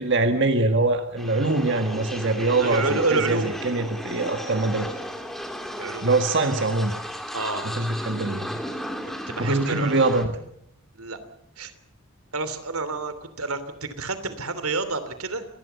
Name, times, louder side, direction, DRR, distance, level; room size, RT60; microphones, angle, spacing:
voice 1, 0.0-4.9 6.0-6.9 7.6-8.6 9.4-10.3, right 2 dB, 55° right, 6 dB, 1.7 m, -23 dB
sound 1, 1.2-10.2, equal, ahead, 2.5 m, -35 dB
voice 2, 2.3-3.5 5.7-6.1 7.3-7.6 9.3-10.0 10.9-11.2 11.6-11.7 12.3-15.4, right 3 dB, 85° right, 11 dB, 3.0 m, -29 dB
26.5 x 19.5 x 6.9 m, 0.75 s
head